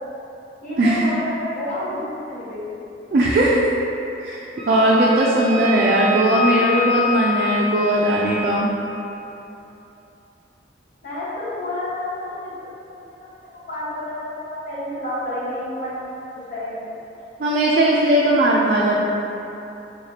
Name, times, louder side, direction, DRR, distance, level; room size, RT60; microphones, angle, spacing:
voice 1, 0.6-2.7 5.5-5.9 6.5-6.8 11.0-12.5 12.9-13.0 13.7-16.0 16.3-16.9, left 1 dB, 45° left, -9 dB, 1.0 m, -29 dB
voice 2, 3.1-3.7 4.2-8.7 17.4-19.0, right 1 dB, 55° right, -5 dB, 0.3 m, -18 dB
Wind instrument woodwind instrument, 4.6-8.6, left 4 dB, 5° left, 0.7 m, -26 dB
3.6 x 3.2 x 2.8 m, 2.9 s
head